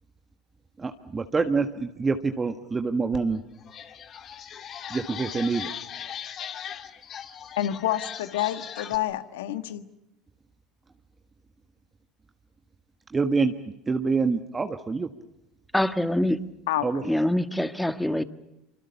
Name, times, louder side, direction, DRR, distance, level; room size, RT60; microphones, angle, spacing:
voice 1, 0.8-3.4 4.9-5.7 13.1-13.5 13.9-15.1 16.8-17.0, right 4 dB, 25° right, 6 dB, 1.6 m, -26 dB
sound 1, 3.1-3.2 3.6-9.0, left 9 dB, 45° left, 2.2 m, -39 dB
voice 2, 7.6-9.8 16.7-17.0, left 13 dB, 85° left, 10 dB, 1.5 m, -28 dB
voice 3, 15.7-16.4 17.0-18.2, left 1 dB, 5° left, 10 dB, 1.6 m, -24 dB
25.5 x 25.5 x 7.1 m, 0.89 s
hypercardioid pair, 85°, 0 cm